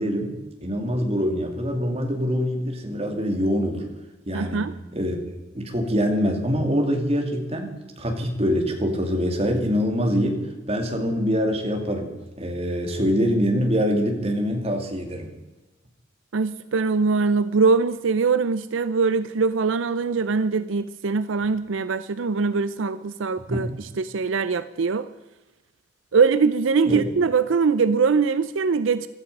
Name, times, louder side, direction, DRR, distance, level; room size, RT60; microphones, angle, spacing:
voice 1, 0.0-3.8 4.3-15.3 23.5-23.7 26.8-27.0, equal, 30° right, 3 dB, 2.4 m, -25 dB
voice 2, 4.3-4.7 16.3-25.1 26.1-29.1, right 4 dB, 80° right, 13 dB, 0.5 m, -22 dB
16.0 x 13.0 x 5.4 m, 1.1 s
head